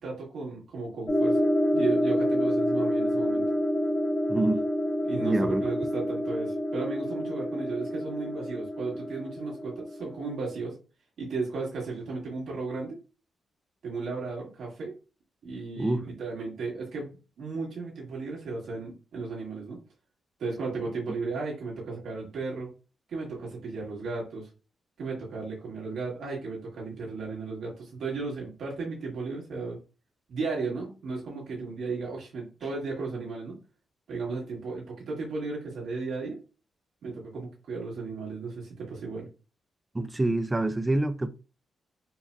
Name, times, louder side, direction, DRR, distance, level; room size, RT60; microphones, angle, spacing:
voice 1, 0.0-3.4 5.0-10.7 11.2-13.0 13.8-14.9 15.4-17.1 17.4-19.8 20.4-22.7 23.1-24.5 25.0-29.8 30.3-33.5 34.1-36.4 37.0-39.3, right 4 dB, 70° right, 1.8 m, -35 dB
sound 1, 1.1-10.6, equal, 30° left, 1.1 m, -28 dB
voice 2, 4.3-4.6 5.1-5.6 15.8-16.1 39.9-41.3, right 2 dB, 20° right, 0.4 m, -26 dB
4.6 x 2.6 x 2.3 m
cardioid pair, 105°, 0 cm